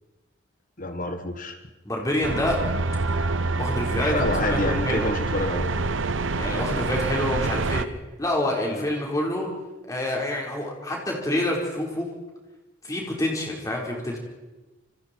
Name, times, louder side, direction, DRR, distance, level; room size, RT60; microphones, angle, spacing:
voice 1, 0.8-1.6 4.0-5.7 8.7-8.9, left 2 dB, 45° left, 7 dB, 1.5 m, -28 dB
voice 2, 1.8-2.6 3.6-5.1 6.4-7.9 8.2-9.5 9.9-12.1 12.8-14.2, left 1 dB, 20° left, -2 dB, 4.7 m, -27 dB
sound 1, 2.2-7.8, right 3 dB, 85° right, 0.9 m, -26 dB
27.5 x 25.5 x 4.6 m, 1.2 s
head